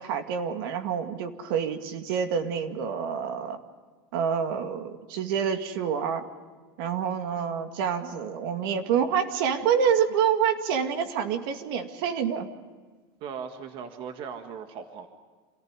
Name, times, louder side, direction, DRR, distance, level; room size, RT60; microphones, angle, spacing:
voice 1, 0.0-3.6 4.1-6.2 6.8-12.5, right 7 dB, 70° right, 6 dB, 2.2 m, -27 dB
voice 2, 13.2-15.1, right 6 dB, 45° right, 6 dB, 1.8 m, -38 dB
27.0 x 15.0 x 9.8 m, 1.4 s
supercardioid pair, 150°, 12 cm